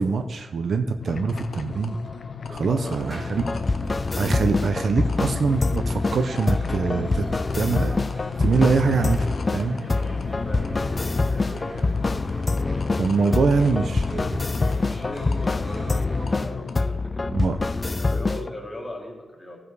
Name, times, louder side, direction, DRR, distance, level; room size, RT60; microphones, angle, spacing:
voice 1, 0.0-2.0 2.5-3.5 4.2-7.3 7.5-8.0 8.4-9.8 13.0-14.4 17.3-17.6, right 4 dB, 60° right, 7 dB, 0.6 m, -24 dB
sound 1, 1.0-16.8, left 5 dB, 50° left, 0.7 m, -36 dB
voice 2, 2.5-3.2 10.4-10.9 13.2-13.4 14.6-17.4 18.0-19.7, left 1 dB, 10° left, 0 dB, 1.8 m, -38 dB
sound 2, 2.7-16.5, equal, 15° right, 2.2 m, -42 dB
sound 3, 3.3-18.5, left 3 dB, 25° left, 0.3 m, -25 dB
14.5 x 5.0 x 4.8 m, 1.4 s
wide cardioid pair, 145°, 0 cm